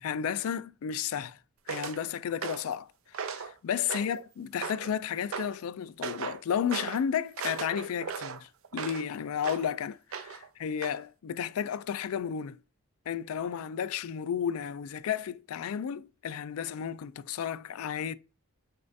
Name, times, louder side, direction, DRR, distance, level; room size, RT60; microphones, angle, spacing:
voice 1, 0.0-1.4 1.7-12.6 13.1-18.2, left 8 dB, 85° left, 0.4 m, -33 dB
sound 1, 1.7-2.0 2.4-2.7 3.1-3.5 3.9-4.2 4.6-4.9 5.3-5.6 6.0-6.4 6.7-7.0 7.4-9.1 9.4-9.7 10.1-10.5 10.8-11.0, right 6 dB, 70° right, 0.5 m, -37 dB
6.5 x 2.4 x 2.6 m
head